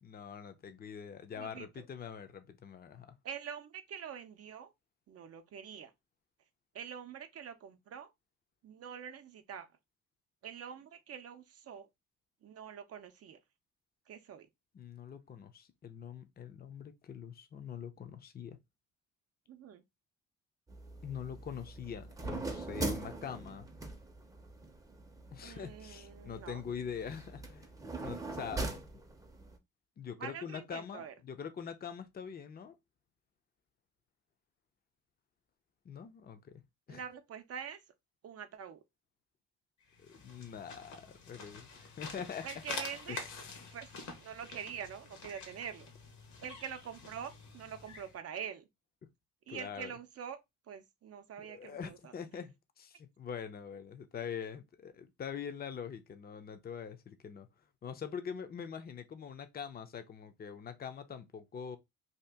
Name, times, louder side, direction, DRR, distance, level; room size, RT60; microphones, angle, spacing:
voice 1, 0.0-3.2 14.7-18.6 21.0-23.7 25.3-27.7 28.0-28.8 30.0-32.8 35.8-37.0 40.0-42.5 43.1-43.3 43.6-43.7 49.5-49.9 51.4-57.5 57.8-61.8, left 7 dB, 30° left, 0.5 m, -44 dB
voice 2, 1.4-1.8 3.2-4.7 5.1-5.9 6.7-8.1 8.6-9.7 10.4-11.9 12.4-13.4 14.1-14.5 19.5-19.8 25.4-26.6 30.2-31.1 36.9-37.8 38.2-38.8 42.4-43.2 43.7-43.9 44.2-45.9 46.4-48.7 49.5-50.4 50.7-52.1, right 8 dB, 55° right, 0.5 m, -45 dB
sound 1, 20.7-29.6, right 2 dB, 10° right, 0.6 m, -42 dB
sound 2, 39.9-48.2, left 4 dB, 70° left, 1.1 m, -47 dB
2.8 x 2.4 x 3.4 m
cardioid pair, 90°, 30 cm